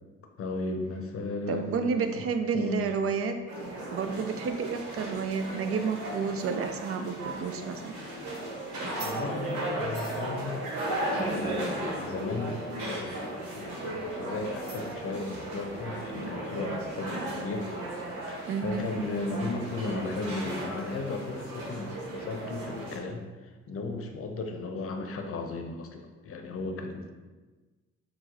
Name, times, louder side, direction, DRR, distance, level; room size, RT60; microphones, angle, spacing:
voice 1, 0.4-2.2 2.5-2.8 9.0-10.6 11.2-12.6 12.9-13.1 13.6-27.1, left 3 dB, 45° left, 4 dB, 0.7 m, -35 dB
voice 2, 1.5-3.4 3.9-7.9 18.4-18.9, right 5 dB, 45° right, 7 dB, 0.5 m, -30 dB
sound 1, 3.5-23.0, right 1 dB, 70° right, 1.0 m, -35 dB
4.7 x 2.0 x 3.8 m, 1.3 s
hypercardioid pair, 45°, 31 cm